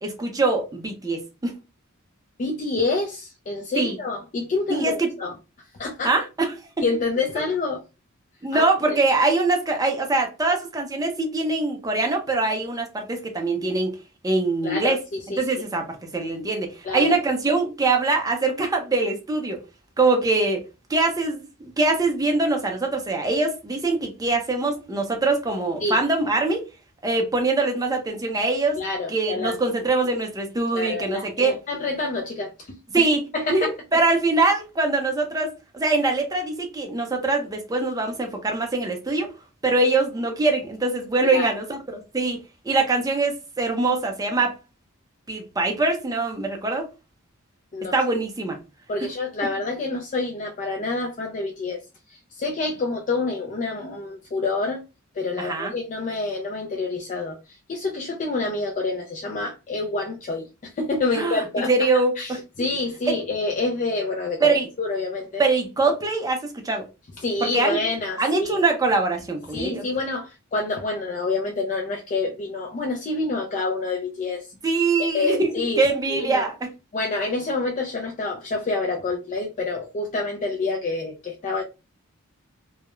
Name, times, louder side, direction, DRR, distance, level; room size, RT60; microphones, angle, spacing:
voice 1, 0.0-1.5 3.8-4.0 4.7-5.1 6.0-6.5 8.4-13.9 14.2-15.0 15.4-19.6 20.0-20.6 20.9-26.7 27.0-28.8 29.1-31.5 32.9-33.2 33.5-39.3 39.6-42.4 42.6-44.5 45.3-46.9 47.9-48.6 55.4-55.7 61.2-62.4 63.1-63.2 64.4-64.7 65.4-66.9 67.4-67.8 68.2-69.8 74.6-75.5 75.8-76.5, right 3 dB, 15° right, 0.5 m, -23 dB
voice 2, 2.4-5.3 5.8-6.1 6.8-7.8 8.5-9.0 14.6-15.4 16.8-17.2 25.8-26.0 28.8-29.6 30.7-33.0 33.3-33.7 41.3-41.5 47.7-47.9 48.9-51.8 52.1-54.8 55.1-65.4 67.2-68.6 69.5-74.5 75.0-75.8 76.1-76.5 76.9-81.6, left 3 dB, 35° left, 0.4 m, -27 dB
2.3 x 2.0 x 3.0 m
head